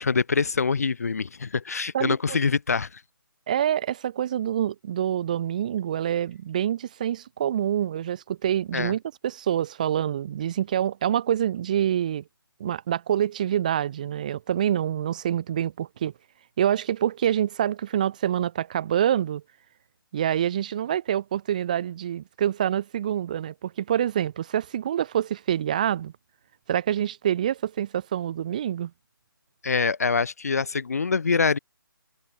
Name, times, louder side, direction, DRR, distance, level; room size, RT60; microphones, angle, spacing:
voice 1, 0.0-3.0 8.7-8.9 29.6-31.6, left 5 dB, 40° left, 2.1 m, -25 dB
voice 2, 1.9-2.4 3.5-12.2 12.6-16.1 16.6-19.4 20.1-26.1 26.7-28.9, right 10 dB, 20° right, 3.2 m, -26 dB
hypercardioid pair, 175°, 12 cm